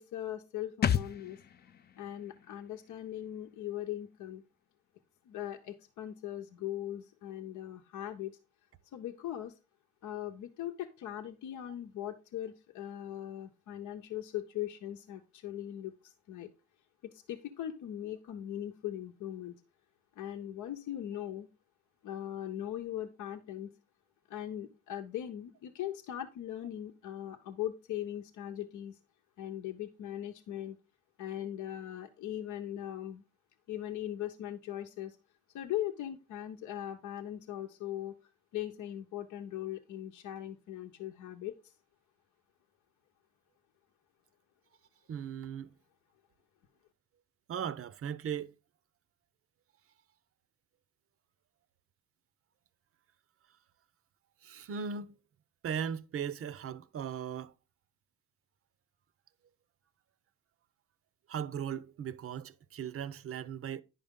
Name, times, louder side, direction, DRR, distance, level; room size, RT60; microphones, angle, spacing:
voice 1, 0.0-1.4 2.0-4.4 5.3-8.4 8.9-9.6 10.0-16.5 17.1-19.5 20.2-21.5 22.0-23.7 24.3-29.0 29.4-30.8 31.2-33.2 33.7-35.2 35.5-38.2 38.5-41.6, left 12 dB, 80° left, 0.8 m, -40 dB
sound 1, 0.8-4.3 4.6-4.7, left 8 dB, 35° left, 0.5 m, -36 dB
voice 2, 45.1-45.7 47.5-48.5 54.4-55.2 55.6-57.5 61.3-63.8, right 8 dB, 50° right, 0.6 m, -38 dB
10.0 x 5.5 x 3.6 m
cardioid pair, 90°, 30 cm